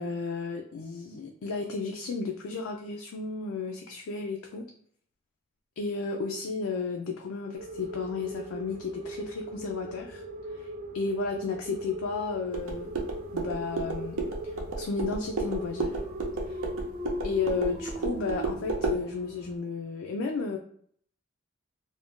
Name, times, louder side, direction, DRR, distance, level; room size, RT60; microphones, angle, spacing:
voice 1, 0.0-4.7 5.8-10.2 10.6-10.7 10.9-13.0 13.3-14.2 14.8-16.0 16.5-16.6 17.2-20.6, left 4 dB, 85° left, 2 dB, 0.4 m, -33 dB
sound 1, 7.5-19.5, right 1 dB, 35° right, 0.3 m, -40 dB
sound 2, 12.5-19.0, right 3 dB, 85° right, 0.6 m, -33 dB
2.5 x 2.1 x 3.5 m, 0.62 s
head